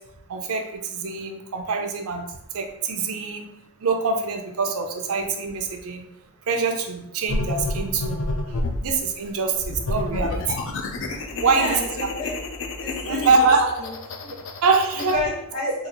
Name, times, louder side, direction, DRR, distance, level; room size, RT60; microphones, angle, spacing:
voice 1, 0.3-2.2 2.5-3.5 3.8-6.0 6.5-8.2 8.8-10.4 11.4-11.8 13.1-13.7 14.6-15.2, right 4 dB, 75° right, 5 dB, 0.5 m, -24 dB
sound 1, 7.3-8.9 9.6-15.1, left 2 dB, 60° left, 0.4 m, -29 dB
voice 2, 11.3-12.3 12.8-13.9 14.2-14.4 14.9-15.7, left 2 dB, 75° left, -5 dB, 1.4 m, -31 dB
3.8 x 2.4 x 2.9 m, 0.82 s
head